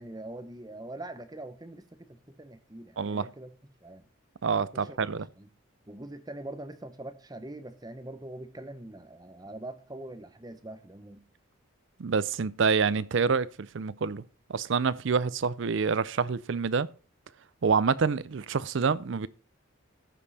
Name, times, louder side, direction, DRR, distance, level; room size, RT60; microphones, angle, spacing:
voice 1, 0.0-3.5 3.8-4.1 4.7-5.5 5.9-11.2, right 1 dB, 20° right, 0.9 m, -43 dB
voice 2, 3.0-3.3 4.4-5.3 12.0-14.2 14.5-16.9 17.6-19.3, right 5 dB, 60° right, 0.5 m, -27 dB
14.5 x 5.4 x 4.1 m
head